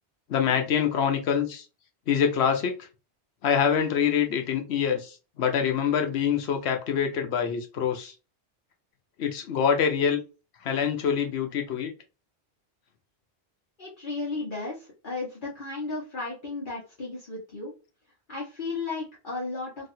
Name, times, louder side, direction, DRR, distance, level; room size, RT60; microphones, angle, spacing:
voice 1, 0.3-1.6 2.1-2.9 3.4-8.1 9.2-10.2 10.6-11.9, left 7 dB, 75° left, 5 dB, 1.0 m, -25 dB
voice 2, 13.8-17.7 18.3-19.9, left 3 dB, 50° left, -6 dB, 1.2 m, -34 dB
3.1 x 2.6 x 2.7 m, 0.32 s
omnidirectional pair, 1.1 m